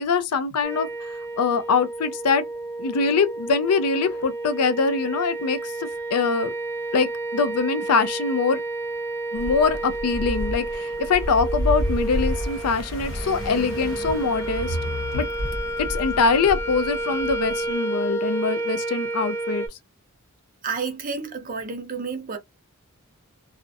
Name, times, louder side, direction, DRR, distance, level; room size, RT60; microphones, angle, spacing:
voice 1, 0.0-2.4 2.8-6.5 6.9-8.6 9.3-14.8 15.1-15.3 15.8-19.7, left 5 dB, 80° left, 0.4 m, -23 dB
sound 1, 0.6-19.7, right 2 dB, 10° left, 0.4 m, -31 dB
sound 2, 9.3-17.7, equal, 60° left, 0.8 m, -30 dB
voice 2, 20.6-22.4, right 5 dB, 40° right, 0.6 m, -30 dB
2.4 x 2.1 x 2.5 m
head